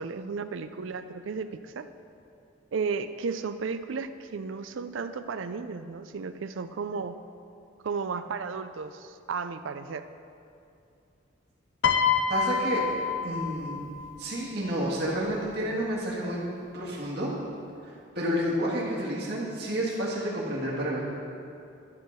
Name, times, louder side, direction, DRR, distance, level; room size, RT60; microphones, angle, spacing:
voice 1, 0.0-1.9 2.7-7.2 7.8-10.0, right 5 dB, 70° right, 11 dB, 0.4 m, -34 dB
Piano, 11.8-14.2 15.2-15.5, left 6 dB, 65° left, 0.4 m, -27 dB
voice 2, 12.3-12.9 13.2-13.9 14.2-16.4 16.7-17.3 18.1-21.0, equal, 50° right, -5 dB, 1.7 m, -30 dB
11.0 x 4.6 x 6.3 m, 2.6 s
head